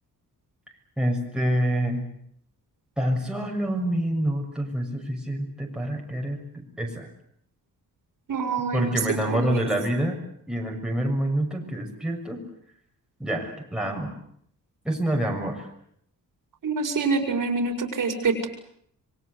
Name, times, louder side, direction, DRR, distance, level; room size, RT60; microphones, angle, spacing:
voice 1, 1.0-2.0 3.0-7.1 8.7-10.2 10.5-12.4 13.2-14.1 14.8-15.7, right 1 dB, ahead, 0 dB, 6.6 m, -27 dB
voice 2, 8.3-9.0 9.3-9.7 16.6-18.5, right 4 dB, 65° right, 5 dB, 5.6 m, -26 dB
27.0 x 23.0 x 8.2 m, 0.69 s
wide cardioid pair, 135°, 35 cm